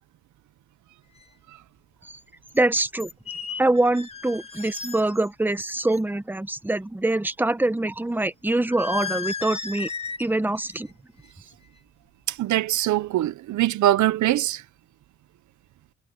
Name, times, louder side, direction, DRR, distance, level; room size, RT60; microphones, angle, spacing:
sound 1, 1.2-1.3 2.5-2.6 3.0-5.3 5.6-6.0 8.7-10.3 10.6-10.9 11.2-11.5, left 5 dB, 20° left, 2.1 m, -35 dB
voice 1, 2.5-3.1 3.6-9.9 10.2-10.9, right 2 dB, 5° right, 1.0 m, -24 dB
voice 2, 12.3-14.6, right 14 dB, 70° right, 0.8 m, -22 dB
cardioid pair, 90°, 30 cm